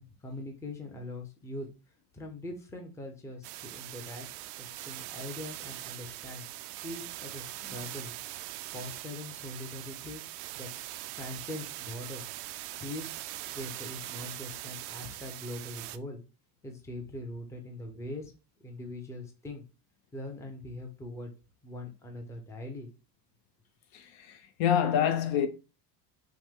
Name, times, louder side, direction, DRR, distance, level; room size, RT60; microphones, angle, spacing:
voice 1, 0.0-1.7 2.1-4.3 4.6-6.4 6.8-8.1 8.7-10.2 10.5-10.7 11.1-12.3 12.8-13.1 13.5-16.2 16.6-18.3 18.6-19.6 20.1-21.3 21.6-22.9, left 1 dB, 5° left, 0.6 m, -42 dB
sound 1, 3.4-16.0, right 16 dB, 85° right, 0.5 m, -42 dB
voice 2, 23.9-25.5, left 9 dB, 50° left, 0.7 m, -27 dB
6.2 x 2.2 x 3.6 m
cardioid pair, 145°, 46 cm